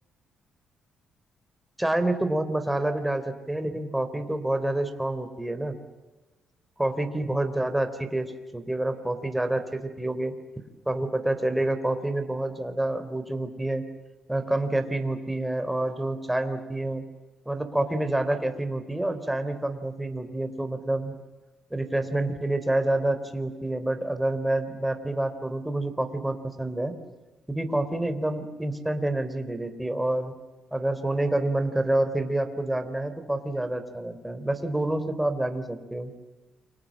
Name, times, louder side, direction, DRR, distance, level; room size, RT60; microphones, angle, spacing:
voice 1, 1.8-5.8 6.8-10.3 10.9-13.8 14.3-17.0 17.5-21.1 21.7-26.9 27.5-30.3 30.7-36.1, right 1 dB, 5° right, 8 dB, 3.9 m, -28 dB
29.5 x 25.5 x 7.6 m, 1.2 s
cardioid pair, 90°, 0 cm